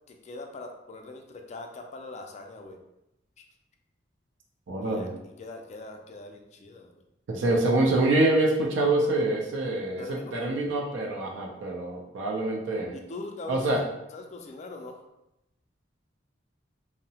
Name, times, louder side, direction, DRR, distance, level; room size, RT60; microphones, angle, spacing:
voice 1, 0.1-2.8 3.4-3.5 4.8-5.1 5.4-6.9 10.0-10.3 12.9-15.0, left 2 dB, 35° left, 3 dB, 0.3 m, -42 dB
voice 2, 4.7-5.1 7.3-12.9 13.5-13.8, right 2 dB, 70° right, -1 dB, 0.4 m, -25 dB
2.7 x 2.0 x 2.7 m, 0.88 s
head